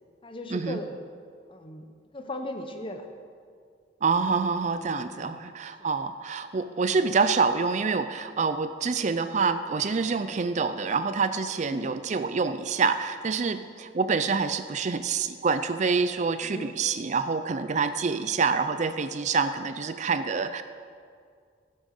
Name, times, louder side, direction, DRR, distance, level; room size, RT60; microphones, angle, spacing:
voice 1, 0.2-1.0 1.5-1.8 2.1-3.1 5.0-5.4 10.1-10.4 11.6-11.9 16.4-16.8 18.3-18.5, left 1 dB, 30° left, 6 dB, 1.0 m, -38 dB
voice 2, 4.0-20.6, right 5 dB, 40° right, 11 dB, 0.4 m, -26 dB
12.5 x 8.9 x 6.6 m, 2.1 s
head